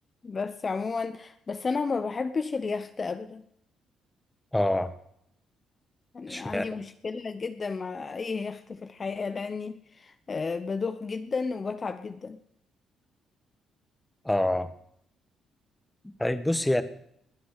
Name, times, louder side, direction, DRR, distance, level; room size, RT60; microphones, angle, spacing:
voice 1, 0.2-3.4 6.1-12.4, left 4 dB, 35° left, 10 dB, 0.9 m, -32 dB
voice 2, 4.5-4.9 6.3-6.8 14.2-14.7 16.0-16.8, left 1 dB, 10° left, 11 dB, 1.4 m, -26 dB
20.5 x 9.5 x 6.6 m, 0.73 s
cardioid pair, 90°, 0 cm